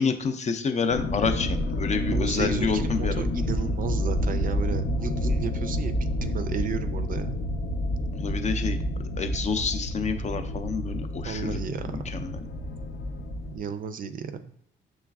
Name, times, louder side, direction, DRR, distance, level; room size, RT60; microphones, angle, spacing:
voice 1, 0.0-3.3 8.1-8.8 9.2-12.4, left 5 dB, 35° left, 8 dB, 0.5 m, -28 dB
sound 1, 0.9-13.6, left 1 dB, 70° left, 0.7 m, -29 dB
voice 2, 2.1-7.4 11.2-12.3 13.5-14.5, right 6 dB, 45° right, 10 dB, 0.4 m, -34 dB
6.1 x 3.2 x 2.3 m, 0.63 s
cardioid pair, 90°, 20 cm